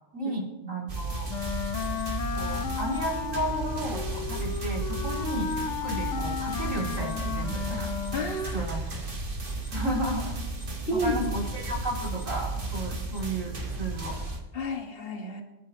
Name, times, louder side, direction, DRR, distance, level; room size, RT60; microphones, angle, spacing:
voice 1, 0.1-1.3 2.3-7.9 8.5-8.8 9.7-10.4 10.9-14.2, right 1 dB, 90° right, -2 dB, 2.9 m, -33 dB
sound 1, 0.9-14.4, right 3 dB, 45° right, 1.7 m, -34 dB
Wind instrument woodwind instrument, 1.3-8.5, left 7 dB, 70° left, 1.0 m, -34 dB
voice 2, 8.1-8.7 10.9-11.2 14.5-15.4, left 1 dB, 50° left, 4 dB, 1.6 m, -30 dB
23.5 x 11.0 x 2.8 m, 1.1 s
omnidirectional pair, 1.3 m